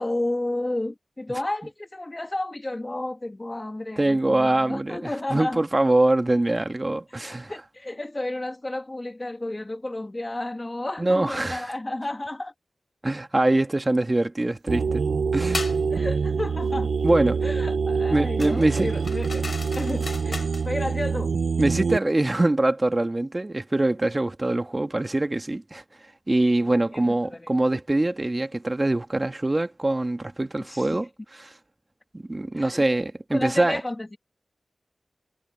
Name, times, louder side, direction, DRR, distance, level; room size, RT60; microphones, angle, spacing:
voice 1, 0.0-5.6 7.2-12.5 15.9-16.9 17.4-19.5 19.8-21.3 26.9-27.5 30.7-31.0 32.6-32.8 33.3-34.2, left 1 dB, 30° left, 1.8 m, -32 dB
voice 2, 4.0-7.5 11.0-11.7 13.0-15.0 15.3-15.7 17.0-17.4 18.1-18.9 21.6-25.8 26.3-31.5 32.1-33.8, right 2 dB, 30° right, 1.9 m, -24 dB
sound 1, 14.7-22.0, right 5 dB, 90° right, 0.6 m, -25 dB
sound 2, 15.5-15.8 18.4-20.7, left 3 dB, 60° left, 3.3 m, -35 dB
cardioid pair, 45°, 0 cm